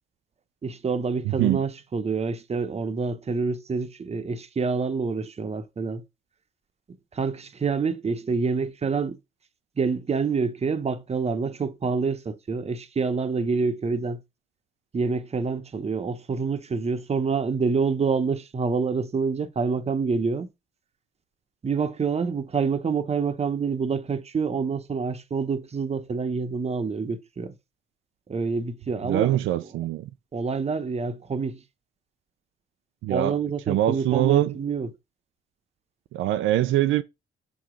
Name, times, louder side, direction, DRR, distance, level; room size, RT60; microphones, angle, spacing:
voice 1, 0.6-6.0 7.1-9.2 9.8-14.2 14.9-20.5 21.6-27.5 28.3-29.4 29.7-29.9 30.3-31.6 33.1-34.9, right 5 dB, 30° right, 0.9 m, -27 dB
voice 2, 1.3-1.6 29.0-30.1 33.0-33.4 33.7-34.6 36.1-37.0, right 13 dB, 85° right, 0.5 m, -23 dB
7.1 x 2.9 x 5.0 m
cardioid pair, 90°, 20 cm